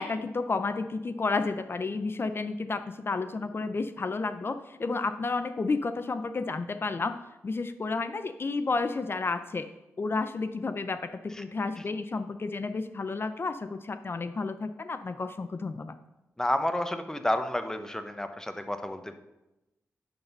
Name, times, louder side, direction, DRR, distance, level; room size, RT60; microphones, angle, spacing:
voice 1, 0.0-7.2 7.4-9.7 10.0-16.0, left 3 dB, 40° left, 10 dB, 0.5 m, -31 dB
voice 2, 16.4-19.2, left 1 dB, 10° left, 8 dB, 0.8 m, -30 dB
10.5 x 4.0 x 5.3 m, 0.97 s
cardioid pair, 60°, 6 cm